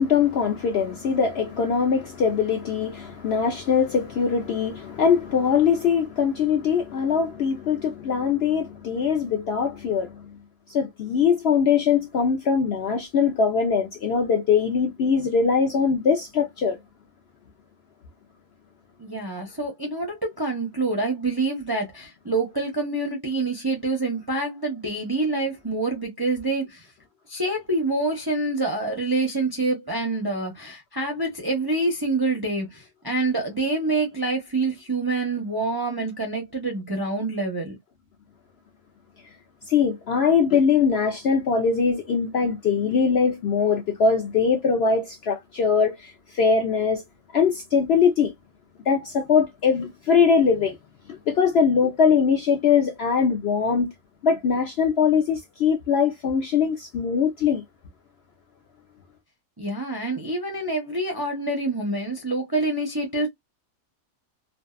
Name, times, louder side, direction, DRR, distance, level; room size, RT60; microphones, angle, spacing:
voice 1, 0.0-10.2 10.7-16.8 39.7-47.0 47.3-48.3 48.9-50.8 51.1-53.9 54.2-57.6, left 6 dB, 65° left, 0.6 m, -22 dB
voice 2, 19.0-26.9 27.3-37.8 59.6-63.3, right 2 dB, 30° right, 0.4 m, -26 dB
2.6 x 2.3 x 2.3 m
omnidirectional pair, 1.5 m